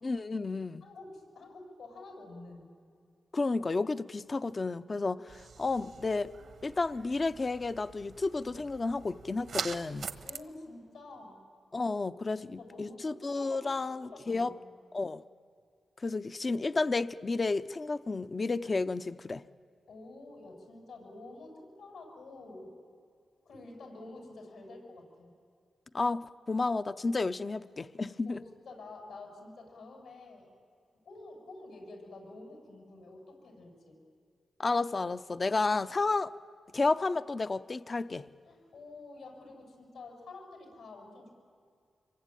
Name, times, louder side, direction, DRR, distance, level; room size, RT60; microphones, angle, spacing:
voice 1, 0.0-0.8 3.3-5.2 5.6-6.3 6.6-10.1 11.7-14.5 14.9-15.2 16.0-19.4 25.9-28.4 34.6-36.3 36.7-38.3, left 3 dB, 35° left, 0.6 m, -31 dB
voice 2, 0.8-2.8 5.1-5.2 10.0-11.4 12.3-14.6 19.9-22.7 23.5-25.3 28.3-30.5 31.1-34.0 38.5-41.3, left 2 dB, 85° left, 7.3 m, -49 dB
sound 1, 5.3-10.4, right 6 dB, 70° right, 1.2 m, -43 dB
26.0 x 23.5 x 9.0 m
cardioid pair, 90°, 0 cm